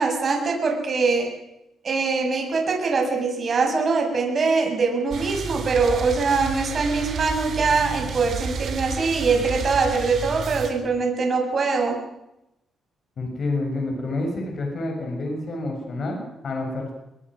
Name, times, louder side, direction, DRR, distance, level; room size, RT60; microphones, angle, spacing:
voice 1, 0.0-1.3 1.8-12.0, right 4 dB, 40° right, 2 dB, 7.0 m, -23 dB
sound 1, 5.1-10.7, right 5 dB, 60° right, 4.5 m, -31 dB
voice 2, 13.2-16.9, left 2 dB, 50° left, 2 dB, 6.8 m, -28 dB
26.0 x 21.5 x 6.3 m, 0.89 s
cardioid pair, 120°, 0 cm